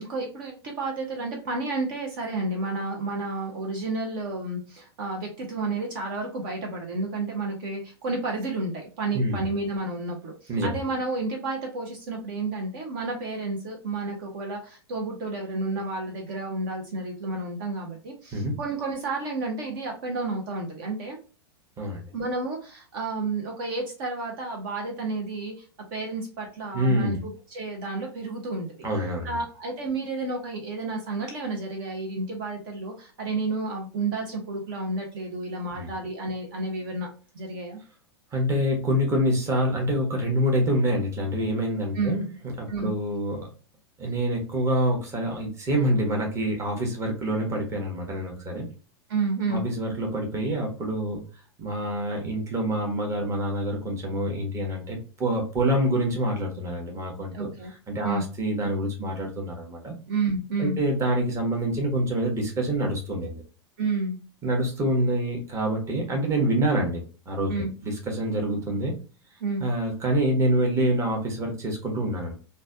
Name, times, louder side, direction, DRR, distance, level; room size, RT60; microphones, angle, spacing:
voice 1, 0.0-21.2 22.1-25.6 25.9-28.9 29.2-37.1 37.3-37.8 41.9-42.2 42.7-42.9 49.1-49.6 57.3-57.7 58.0-58.2 60.1-60.8 63.8-64.2 67.5-67.7 69.4-69.6, right 3 dB, 50° right, 1 dB, 0.7 m, -31 dB
voice 2, 9.1-9.5 10.5-10.8 18.3-18.5 21.8-22.0 26.7-27.2 28.8-29.4 35.7-35.9 38.3-42.3 42.6-43.5 44.0-48.7 49.5-51.2 51.6-57.5 57.9-59.9 60.6-63.4 64.4-67.5 67.8-68.9 69.6-72.3, right 1 dB, 20° right, 0 dB, 1.0 m, -26 dB
3.2 x 2.2 x 2.6 m, 0.36 s
figure-of-eight pair, 95°, 14 cm